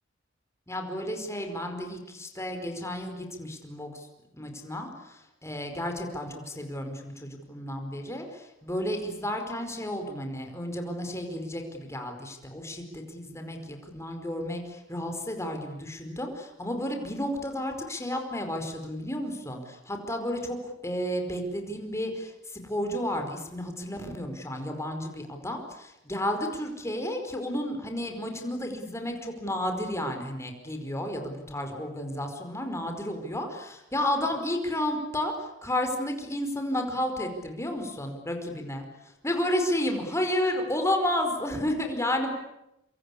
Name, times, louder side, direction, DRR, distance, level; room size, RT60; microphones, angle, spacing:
voice 1, 0.7-4.1 4.3-42.3, left 1 dB, 15° left, 4 dB, 4.9 m, -32 dB
27.0 x 25.5 x 8.6 m, 0.86 s
head